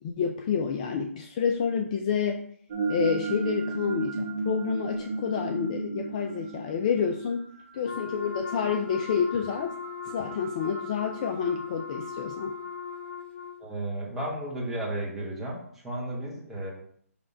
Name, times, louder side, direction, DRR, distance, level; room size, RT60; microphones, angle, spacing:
voice 1, 0.0-2.4 2.9-7.4 7.7-9.8 10.0-12.5, left 7 dB, 30° left, 3 dB, 0.5 m, -29 dB
sound 1, 2.7-12.7, right 3 dB, 35° right, 1.4 m, -35 dB
Wind instrument woodwind instrument, 7.8-13.6, left 6 dB, 50° left, 1.2 m, -39 dB
voice 2, 13.6-15.6 15.8-16.7, right 1 dB, 5° right, -6 dB, 1.4 m, -33 dB
5.8 x 3.3 x 5.2 m, 0.63 s
hypercardioid pair, 155°, 8 cm